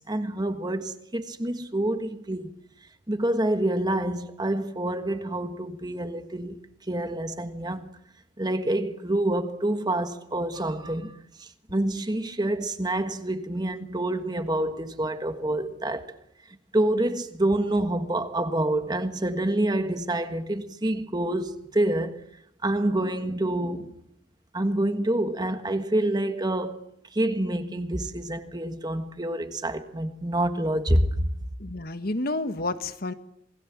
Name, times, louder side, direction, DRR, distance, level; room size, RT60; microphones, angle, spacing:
voice 1, 0.0-2.5 3.1-6.6 6.9-7.9 8.4-16.1 16.7-22.2 22.6-23.9 24.5-26.9 27.1-31.3, right 1 dB, 20° right, 1.5 m, -27 dB
voice 2, 31.6-33.1, left 2 dB, 50° left, 1.5 m, -30 dB
27.5 x 21.0 x 7.3 m
head